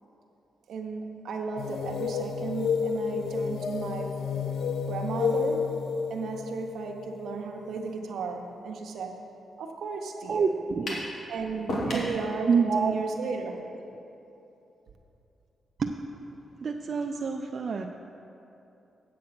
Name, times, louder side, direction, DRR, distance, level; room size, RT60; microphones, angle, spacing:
voice 1, 0.7-4.2 4.9-5.7 6.1-9.2 9.6-10.5 11.3-13.6, right 4 dB, 80° right, 3 dB, 1.0 m, -34 dB
sound 1, 1.6-8.0, left 6 dB, 85° left, 0.6 m, -31 dB
voice 2, 10.2-11.1 11.9-13.0 13.3-13.4 15.8-15.9 16.6-17.9, right 5 dB, 55° right, 3 dB, 0.4 m, -28 dB
sound 2, 10.9-11.1 11.7-12.1, left 1 dB, 65° left, 2.1 m, -30 dB
8.7 x 7.5 x 5.9 m, 2.9 s
cardioid pair, 90°, 0 cm